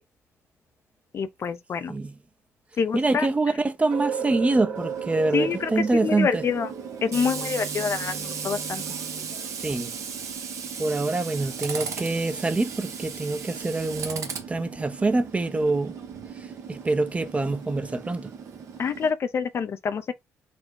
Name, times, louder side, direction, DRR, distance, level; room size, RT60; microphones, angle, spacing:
voice 1, 1.1-1.9 2.8-3.3 5.3-6.7 7.0-8.8 18.8-20.1, left 6 dB, 50° left, 0.5 m, -27 dB
voice 2, 2.9-6.4 9.6-9.9 10.8-15.9 16.7-18.3, right 3 dB, 20° right, 0.6 m, -25 dB
sound 1, 3.9-9.8, right 6 dB, 85° right, 1.7 m, -36 dB
Tools, 4.8-19.1, right 6 dB, 60° right, 1.0 m, -36 dB
4.2 x 2.2 x 4.6 m
supercardioid pair, 70°, 6 cm